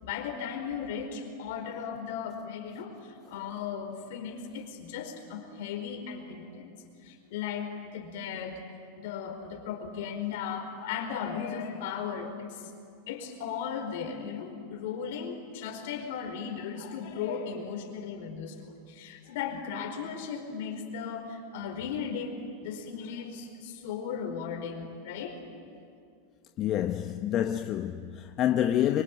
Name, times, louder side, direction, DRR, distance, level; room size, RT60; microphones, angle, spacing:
voice 1, 0.0-6.8 7.0-8.6 8.9-12.7 13.1-25.4, left 7 dB, 70° left, 4.7 m, -36 dB
voice 2, 26.6-29.0, left 11 dB, 45° left, 1.0 m, -27 dB
24.5 x 23.5 x 9.3 m
hypercardioid pair, 110°, 0 cm